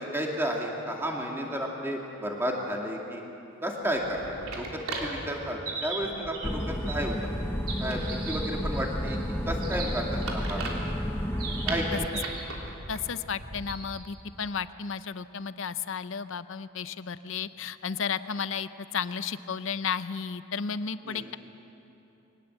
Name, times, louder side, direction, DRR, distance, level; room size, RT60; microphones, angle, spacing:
voice 1, 0.0-3.2 3.6-7.1 7.8-9.2 9.4-10.7 11.7-12.3 21.1-21.3, equal, 10° right, 0 dB, 2.4 m, -32 dB
sound 1, 3.9-14.1, right 3 dB, 85° right, 3.2 m, -37 dB
sound 2, 6.4-12.1, equal, 10° left, 0.8 m, -32 dB
voice 2, 12.9-21.4, left 6 dB, 60° left, 14 dB, 0.6 m, -33 dB
22.5 x 19.0 x 8.1 m, 2.9 s
head